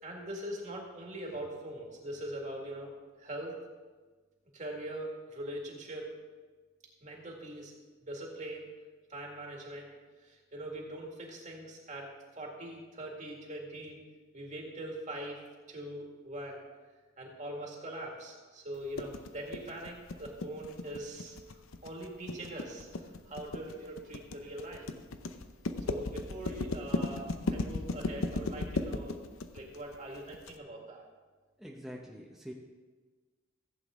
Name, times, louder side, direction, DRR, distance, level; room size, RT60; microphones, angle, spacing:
voice 1, 0.0-2.9 3.2-3.6 4.5-6.1 7.0-7.7 8.0-8.7 9.1-9.9 10.2-12.1 12.4-14.0 14.3-15.4 15.7-16.6 17.2-21.4 21.8-22.9 23.3-24.9 25.9-29.2 29.5-31.0, right 1 dB, 35° right, -1 dB, 2.1 m, -42 dB
sound 1, 19.0-30.5, left 3 dB, 85° left, 0.7 m, -36 dB
voice 2, 31.6-32.5, equal, ahead, -3 dB, 0.8 m, -45 dB
15.0 x 8.4 x 3.7 m, 1.4 s
head